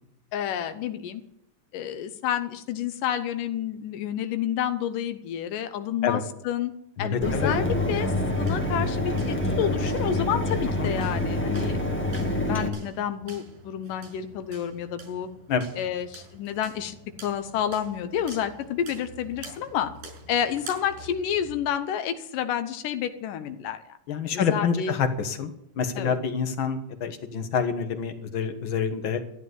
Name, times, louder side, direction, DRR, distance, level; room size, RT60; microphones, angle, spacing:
voice 1, 0.3-1.2 1.7-6.7 7.0-8.1 8.4-11.8 12.5-15.3 15.8-17.0 17.2-19.9 20.3-23.8 24.1-25.0 26.0-26.2, left 9 dB, 85° left, 9 dB, 2.6 m, -29 dB
voice 2, 7.0-7.5 10.8-10.9 15.5-15.6 24.1-25.5 25.8-29.2, left 6 dB, 55° left, 8 dB, 1.5 m, -27 dB
sound 1, 7.0-21.7, right 2 dB, 90° right, 7.9 m, -47 dB
Mechanisms, 7.2-12.7, left 1 dB, 10° left, 0.6 m, -26 dB
14.0 x 10.5 x 8.0 m, 0.77 s
omnidirectional pair, 3.7 m